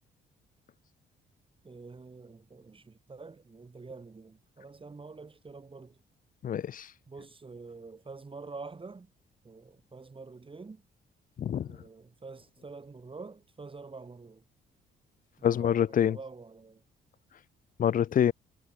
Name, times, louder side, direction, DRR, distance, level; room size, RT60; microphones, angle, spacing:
voice 1, 1.6-6.0 7.1-9.1 9.4-10.8 11.7-14.4 15.4-16.8, right 4 dB, 25° right, 3.4 m, -47 dB
voice 2, 6.4-6.9 11.4-11.7 15.4-16.2 17.8-18.3, left 9 dB, 45° left, 0.5 m, -26 dB
cardioid pair, 90°, 20 cm